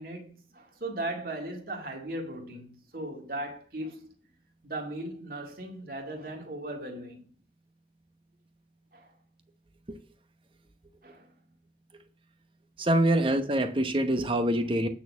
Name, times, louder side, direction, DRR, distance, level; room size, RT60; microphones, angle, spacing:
voice 1, 0.0-4.1 4.6-7.3 8.9-9.1 11.0-11.3, right 1 dB, 50° right, 2.0 m, -38 dB
voice 2, 12.8-14.9, right 1 dB, 30° right, 0.9 m, -25 dB
9.0 x 4.3 x 7.1 m
head